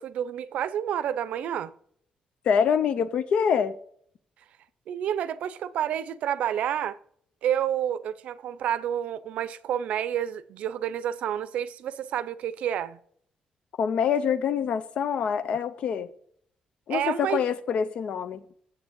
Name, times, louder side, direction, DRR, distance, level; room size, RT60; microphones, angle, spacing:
voice 1, 0.0-1.7 4.9-7.0 7.4-13.0 16.9-17.4, right 10 dB, 70° right, 0.6 m, -29 dB
voice 2, 2.5-3.8 13.8-16.1 16.9-18.4, left 7 dB, 55° left, 0.5 m, -25 dB
7.9 x 7.0 x 7.4 m
cardioid pair, 180°, 2 cm